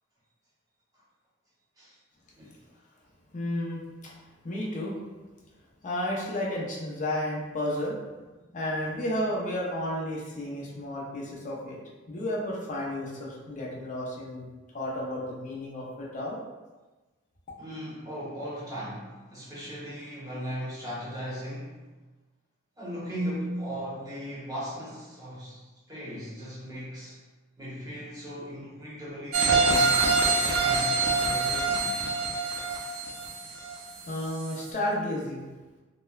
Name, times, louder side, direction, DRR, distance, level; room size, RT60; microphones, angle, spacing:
voice 1, 3.3-4.1 4.4-5.0 5.8-8.0 8.5-11.8 12.1-14.5 14.7-16.4 34.0-35.4, left 1 dB, 35° left, -4 dB, 0.5 m, -32 dB
voice 2, 17.6-21.8 22.8-27.2 27.6-31.9, equal, 20° right, -8 dB, 0.8 m, -37 dB
sound 1, 29.3-34.1 34.5-34.6, right 3 dB, 65° right, 0.5 m, -25 dB
2.9 x 2.1 x 2.3 m, 1.2 s
head